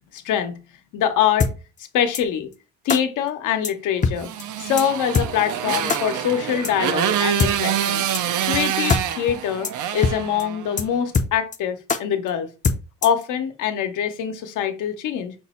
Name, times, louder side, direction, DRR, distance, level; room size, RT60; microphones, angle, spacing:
voice 1, 0.1-0.6 0.9-1.5 1.9-2.5 2.8-4.3 4.6-8.0 8.5-12.5 13.0-15.3, left 9 dB, 85° left, 0.8 m, -24 dB
sound 1, 1.4-1.5 2.1-2.2 2.9-3.0 3.6-3.7 4.0-4.1 4.4-4.5 4.8-4.9 5.1-5.3 5.9-6.0 6.6-6.7 7.4-7.5 8.1-8.2 8.5-8.6 8.9-9.0 9.3-9.4 9.6-9.7 10.0-10.1 10.4-10.5 10.8-10.9 11.1-11.6 11.9-12.0 12.6-13.2, left 5 dB, 25° left, 0.4 m, -21 dB
Motorcycle, 4.2-10.9, right 10 dB, 80° right, 0.5 m, -26 dB
5.9 x 2.0 x 4.2 m
cardioid pair, 90°, 30 cm